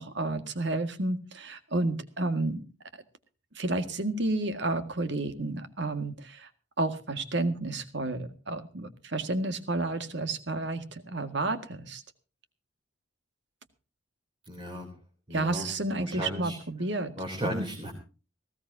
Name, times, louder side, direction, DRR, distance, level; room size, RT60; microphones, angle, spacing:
voice 1, 0.0-2.6 3.6-6.5 6.8-12.0 15.3-17.1 17.6-17.7, right 2 dB, 60° right, 9 dB, 2.0 m, -31 dB
voice 2, 14.5-14.9 15.3-16.6 17.2-17.9, equal, 25° right, 0 dB, 3.5 m, -35 dB
19.5 x 16.5 x 2.8 m, 0.35 s
head